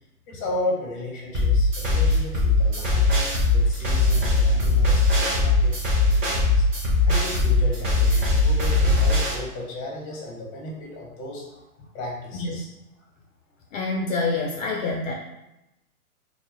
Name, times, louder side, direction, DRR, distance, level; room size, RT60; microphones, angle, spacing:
voice 1, 0.3-3.1 3.5-6.6 7.0-12.7, left 1 dB, 25° left, -2 dB, 0.7 m, -34 dB
sound 1, 1.3-9.3, left 2 dB, 20° right, 0.5 m, -20 dB
voice 2, 13.7-15.1, left 3 dB, 60° left, 0 dB, 0.5 m, -26 dB
2.2 x 2.1 x 3.2 m, 0.90 s
hypercardioid pair, 120°, 46 cm